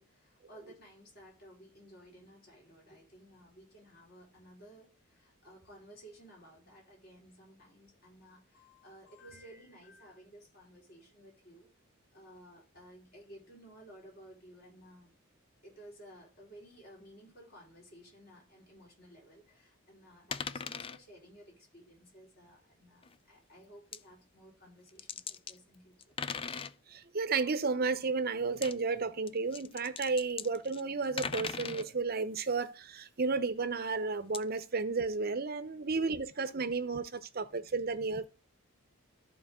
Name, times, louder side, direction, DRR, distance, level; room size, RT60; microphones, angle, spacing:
voice 1, 0.0-11.7 12.1-15.1 15.6-26.2, equal, 45° left, 4.3 m, -56 dB
sound 1, 20.3-21.0 23.0-23.2 23.9-24.0 24.9-25.6 26.0-26.7 28.5-28.7 29.3-31.9 34.3-34.4, left 6 dB, 25° left, 0.3 m, -39 dB
voice 2, 26.9-38.3, right 4 dB, 45° right, 0.7 m, -33 dB
14.0 x 4.7 x 3.6 m
head